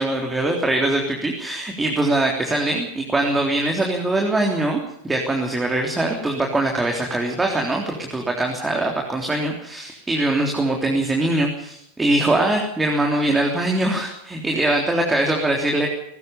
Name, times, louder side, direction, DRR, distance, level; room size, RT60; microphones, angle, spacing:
voice 1, 0.0-15.9, right 2 dB, 10° right, 1 dB, 3.5 m, -22 dB
20.0 x 19.0 x 7.1 m, 0.75 s
figure-of-eight pair, 90°, 0 cm